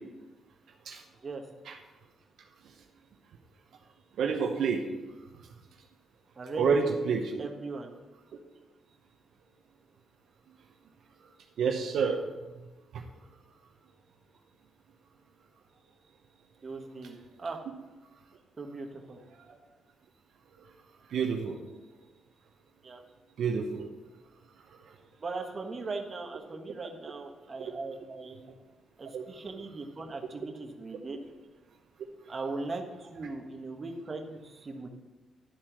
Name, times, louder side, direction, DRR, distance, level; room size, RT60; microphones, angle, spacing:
voice 1, 4.2-4.8 6.6-7.4 11.6-12.2 12.9-13.0 21.1-21.6 23.4-23.9 27.6-27.7 29.1-29.2, right 5 dB, 75° right, 3 dB, 0.8 m, -28 dB
voice 2, 6.3-6.8 7.1-7.9 16.6-17.6 18.6-19.2 22.8-23.0 25.2-28.4 29.0-31.2 32.3-34.9, right 3 dB, 35° right, 2 dB, 1.4 m, -39 dB
11.5 x 4.3 x 6.2 m, 1.2 s
cardioid pair, 80°, 0 cm